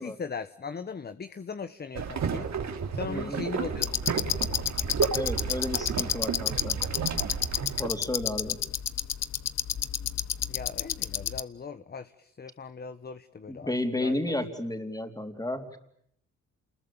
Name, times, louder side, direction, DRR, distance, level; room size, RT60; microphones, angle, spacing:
voice 1, 0.0-2.5 2.9-4.3 10.5-14.1, left 5 dB, 35° left, 12 dB, 1.1 m, -39 dB
sound 1, 1.9-7.9, right 6 dB, 65° right, 3.0 m, -32 dB
voice 2, 3.1-3.4 5.1-6.8 7.8-8.6 13.5-15.8, left 1 dB, 10° left, 6 dB, 3.8 m, -32 dB
sound 2, 3.8-11.4, left 9 dB, 60° left, 1.0 m, -31 dB
28.5 x 21.5 x 8.9 m, 0.71 s
cardioid pair, 70°, 30 cm